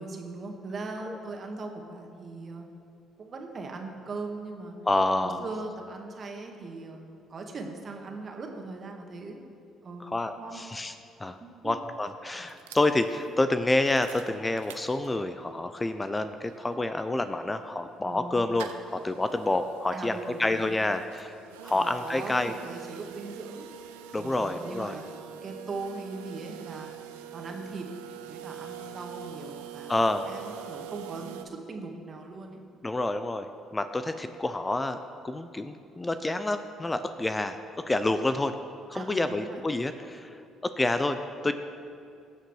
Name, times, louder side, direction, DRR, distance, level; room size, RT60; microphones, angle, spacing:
voice 1, 0.0-2.7 3.2-4.7 5.2-7.0 7.3-9.5 9.8-10.1 10.4-10.6 11.4-11.5 18.0-18.5 19.9-20.8 21.7-23.7 24.1-25.0 25.4-26.9 27.3-27.9 28.2-32.6 38.9-39.6, right 3 dB, 45° right, 2 dB, 1.9 m, -39 dB
voice 2, 4.9-5.4 10.0-10.9 11.2-11.4 11.6-21.4 21.6-22.5 24.1-25.0 29.9-30.2 32.8-33.5 33.7-35.0 35.2-37.6 37.9-38.5 38.9-41.5, left 2 dB, 20° left, 9 dB, 0.7 m, -28 dB
sound 1, 12.5-15.5 15.9-16.0 16.1-31.5, right 10 dB, 85° right, 0.6 m, -45 dB
17.5 x 6.6 x 4.8 m, 2.4 s
hypercardioid pair, 55°, 0 cm